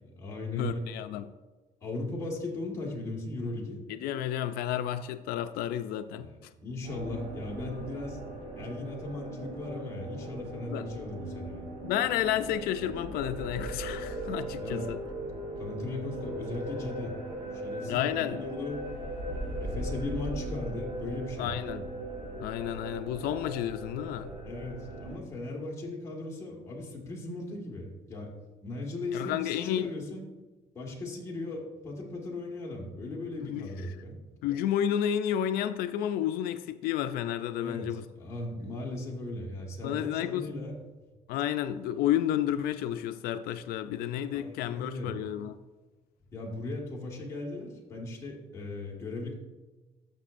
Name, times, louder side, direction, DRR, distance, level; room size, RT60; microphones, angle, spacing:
voice 1, 0.0-0.8 1.8-3.8 6.2-11.7 14.6-14.9 15.6-17.2 17.5-18.9 19.6-21.6 24.5-28.3 28.6-30.2 30.7-34.2 37.6-40.8 44.3-45.1 46.3-49.3, left 2 dB, 20° left, 1.7 m, -38 dB
voice 2, 0.5-1.3 3.9-6.3 10.7-10.9 11.8-15.0 17.9-18.4 21.4-21.9 22.4-24.3 29.1-29.9 33.4-33.7 34.4-38.0 39.8-40.5 41.3-45.5, left 11 dB, 90° left, 0.4 m, -31 dB
sound 1, 6.8-25.2, right 1 dB, 55° right, 1.4 m, -39 dB
13.0 x 5.9 x 2.5 m
cardioid pair, 170°, 15 cm